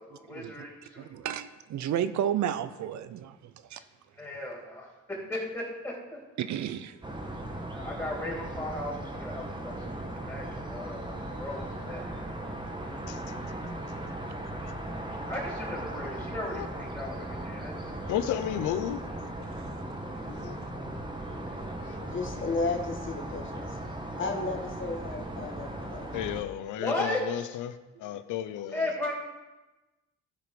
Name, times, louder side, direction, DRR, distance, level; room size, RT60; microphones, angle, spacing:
voice 1, 0.3-0.7 0.9-1.1 4.2-6.2 7.7-9.8 10.1-12.1 15.3-17.8 26.8-27.4 28.7-29.1, left 1 dB, 10° left, -4 dB, 3.6 m, -36 dB
voice 2, 1.0-3.8 6.4-7.0 10.3-10.4 19.5-19.7, right 10 dB, 70° right, 13 dB, 0.7 m, -32 dB
sound 1, 7.0-26.4, right 1 dB, 15° right, 1.3 m, -38 dB
voice 3, 13.1-13.6 14.3-14.4 14.6-14.7 16.5-16.7 18.1-19.0 19.4-19.5 20.3-20.6 21.8-22.0 26.1-28.9, left 11 dB, 85° left, 12 dB, 0.7 m, -34 dB
voice 4, 21.3-21.6 22.0-23.7 24.2-26.1, left 3 dB, 40° left, 1 dB, 1.7 m, -34 dB
15.0 x 5.1 x 5.2 m, 1.1 s
cardioid pair, 90°, 30 cm